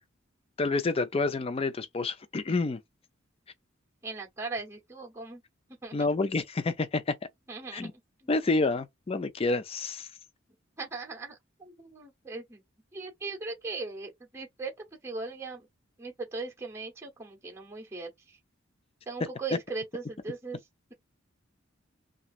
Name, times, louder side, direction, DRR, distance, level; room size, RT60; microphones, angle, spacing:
voice 1, 0.6-2.8 5.9-7.1 7.7-7.9 8.3-10.1, left 3 dB, 30° left, 0.4 m, -28 dB
voice 2, 4.0-5.4 5.8-6.0 7.5-8.3 10.8-12.6 12.9-14.7 15.0-15.7 16.0-18.4 19.1-20.6, right 3 dB, 15° right, 0.8 m, -39 dB
3.0 x 2.5 x 2.4 m
head